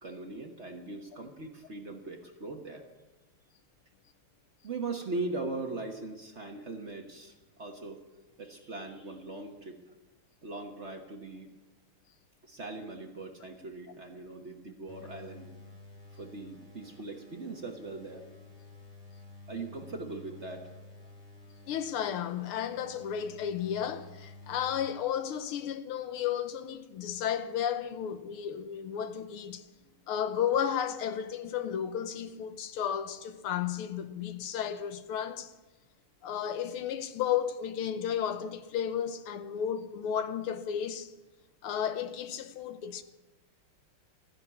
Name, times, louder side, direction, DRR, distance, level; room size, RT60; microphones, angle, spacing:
voice 1, 0.0-2.9 4.6-8.0 8.4-9.8 10.4-11.5 12.4-15.5 16.1-18.3 19.5-20.7, right 3 dB, 40° right, 1.2 m, -40 dB
sound 1, 14.9-24.9, left 2 dB, ahead, 7.2 m, -52 dB
voice 2, 21.7-29.6 30.1-35.5 36.2-41.1 41.6-43.0, left 9 dB, 80° left, 1.8 m, -33 dB
14.5 x 10.5 x 8.3 m
omnidirectional pair, 2.4 m